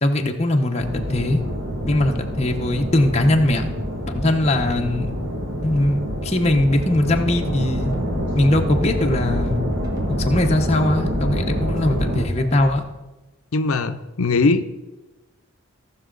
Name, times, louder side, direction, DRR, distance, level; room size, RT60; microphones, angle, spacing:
voice 1, 0.0-1.4 1.9-3.6 4.1-5.1 5.6-7.9 8.4-9.6 10.2-12.8, left 1 dB, 30° left, 2 dB, 0.9 m, -20 dB
sound 1, 0.8-12.3, equal, 55° right, 2.0 m, -26 dB
sound 2, 6.5-12.8, equal, 15° right, 1.6 m, -37 dB
voice 2, 13.5-14.6, left 3 dB, 80° left, 8 dB, 0.6 m, -20 dB
18.5 x 6.2 x 3.9 m, 1.1 s
head